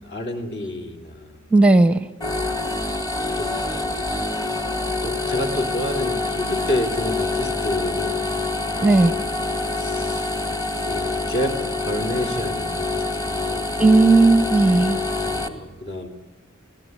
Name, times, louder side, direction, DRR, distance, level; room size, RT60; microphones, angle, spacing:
voice 1, 0.0-1.4 3.4-3.6 3.9-4.1 4.7-8.2 8.7-10.3 10.8-13.7 15.2-16.1, left 1 dB, 55° left, 4 dB, 3.3 m, -30 dB
voice 2, 1.5-2.1 8.8-9.1 13.8-15.0, right 3 dB, 5° right, 13 dB, 0.7 m, -15 dB
sound 1, 2.2-15.5, left 3 dB, 20° left, 1.7 m, -26 dB
25.5 x 16.5 x 9.5 m, 1.2 s
head